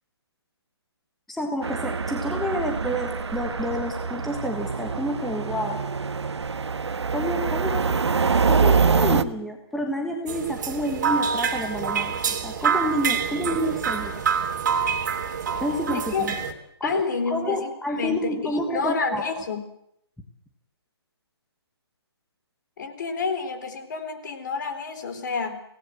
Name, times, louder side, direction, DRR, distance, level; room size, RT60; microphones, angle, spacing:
voice 1, 1.3-5.8 7.1-7.9 8.5-14.2 15.6-16.3 16.8-19.4, equal, ahead, 2 dB, 1.4 m, -29 dB
sound 1, 1.6-9.2, right 5 dB, 80° right, 1.4 m, -25 dB
sound 2, 10.3-16.5, right 7 dB, 40° right, 2.7 m, -26 dB
voice 2, 15.9-16.3 16.8-19.6 22.8-25.6, left 5 dB, 45° left, 9 dB, 3.8 m, -29 dB
24.5 x 18.0 x 7.9 m, 0.73 s
hypercardioid pair, 165°, 14 cm